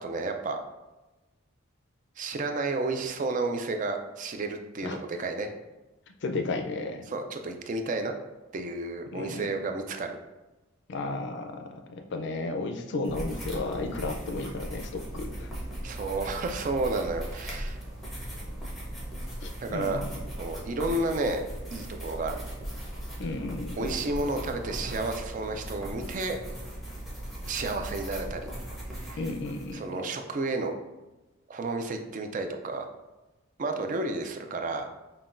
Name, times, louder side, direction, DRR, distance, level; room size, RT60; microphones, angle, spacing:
voice 1, 0.0-0.6 2.2-5.5 7.1-8.1 8.5-10.2 15.8-17.8 19.6-20.0 20.4-21.4 21.7-22.4 23.8-26.4 27.4-28.5 28.9-29.2 29.7-30.7 31.5-32.9 33.6-34.9, right 3 dB, 35° right, 5 dB, 0.3 m, -31 dB
voice 2, 6.2-7.0 9.1-9.5 10.9-15.5 19.4-20.2 23.2-23.9 29.2-29.8, left 3 dB, 55° left, 5 dB, 0.4 m, -33 dB
sound 1, 13.0-29.7, right 1 dB, ahead, 0.7 m, -38 dB
5.5 x 2.3 x 2.5 m, 1.1 s
head